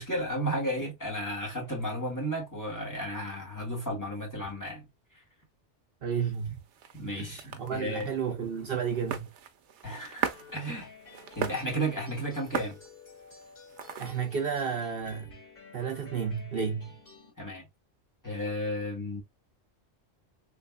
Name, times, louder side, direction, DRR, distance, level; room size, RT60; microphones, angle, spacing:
voice 1, 0.0-4.8 6.9-8.1 9.8-10.9 11.4-12.8 17.4-17.6 18.2-19.2, equal, 15° left, 1.7 m, -33 dB
voice 2, 6.0-6.6 7.2-9.3 14.0-15.3 15.7-17.0, right 6 dB, 60° right, 0.9 m, -32 dB
sound 1, 6.3-14.4, right 8 dB, 85° right, 0.9 m, -40 dB
sound 2, 10.3-17.3, left 5 dB, 50° left, 2.2 m, -52 dB
3.4 x 3.2 x 2.2 m
omnidirectional pair, 1.2 m